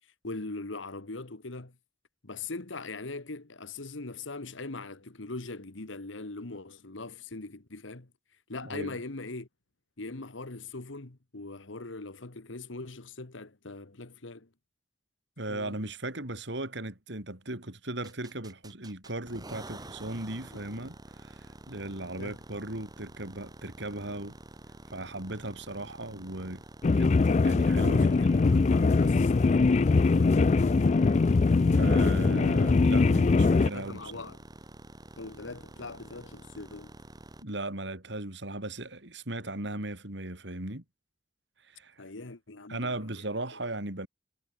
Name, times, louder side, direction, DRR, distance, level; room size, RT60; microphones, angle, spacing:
voice 1, 0.2-1.8 2.2-8.1 8.5-9.5 10.0-14.5 15.5-15.8 20.5-20.6 22.2-22.4 27.7-30.8 33.7-34.4 35.2-36.9 42.0-43.0, left 3 dB, 90° left, 1.6 m, -41 dB
voice 2, 8.6-9.0 15.4-24.4 24.9-26.6 27.0-27.1 27.4-28.1 31.7-34.2 37.4-40.8 41.6-42.1 42.7-44.1, right 2 dB, 65° right, 4.1 m, -37 dB
sound 1, 18.0-37.4, right 1 dB, 20° right, 2.5 m, -49 dB
sound 2, 26.8-33.7, left 3 dB, 35° left, 0.4 m, -22 dB
head